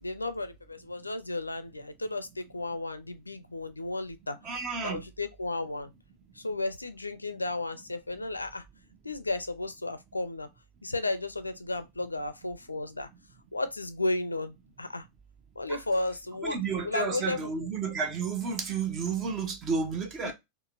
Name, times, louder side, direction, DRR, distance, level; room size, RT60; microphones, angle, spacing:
voice 1, 0.0-4.4 4.8-5.9 6.4-8.6 9.0-10.5 10.8-13.1 13.5-15.0 15.6-17.5 20.2-20.3, left 2 dB, 80° left, 0.4 m, -33 dB
voice 2, 4.4-5.0 15.7-15.8 16.4-20.3, right 5 dB, 30° right, 0.7 m, -31 dB
3.9 x 2.1 x 2.4 m
figure-of-eight pair, 90°, 0 cm